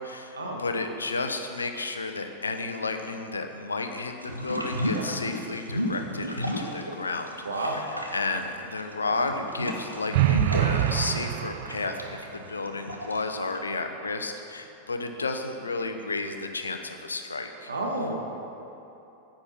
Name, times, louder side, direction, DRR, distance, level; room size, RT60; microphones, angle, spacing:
voice 1, 0.0-7.9 8.1-17.7, left 3 dB, 75° left, 6 dB, 0.8 m, -32 dB
sound 1, 4.2-7.3 7.6-13.6, equal, 90° right, 1.0 m, -33 dB
voice 2, 7.4-7.8 17.7-18.2, right 2 dB, 75° right, -1 dB, 1.8 m, -30 dB
sound 2, 10.1-12.2, right 13 dB, 50° right, 0.5 m, -25 dB
9.9 x 8.8 x 5.9 m, 2.9 s
figure-of-eight pair, 90°, 0 cm